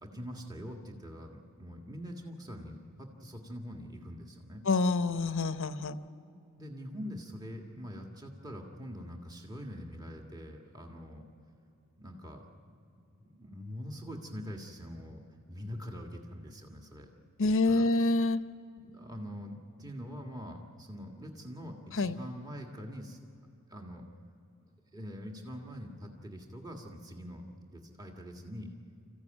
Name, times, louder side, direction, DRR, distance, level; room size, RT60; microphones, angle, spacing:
voice 1, 0.0-4.6 6.3-11.2 12.0-12.4 13.1-15.2 15.5-17.1 17.4-17.9 18.8-23.2 23.7-24.1 24.9-27.4 27.7-28.7, equal, 20° right, 1 dB, 1.7 m, -44 dB
voice 2, 4.7-6.0 17.4-18.4 22.0-22.2, left 3 dB, 60° left, 11 dB, 0.8 m, -27 dB
27.0 x 15.0 x 9.0 m, 2.8 s
head